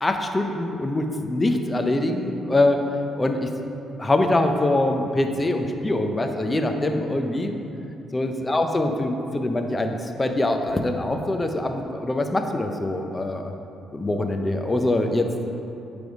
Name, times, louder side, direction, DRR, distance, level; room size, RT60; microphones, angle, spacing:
voice 1, 0.0-2.8 3.2-3.5 4.0-7.5 8.1-13.5 13.9-15.5, left 2 dB, 20° left, 5 dB, 0.6 m, -24 dB
9.3 x 3.4 x 4.8 m, 2.8 s
cardioid pair, 90°, 0 cm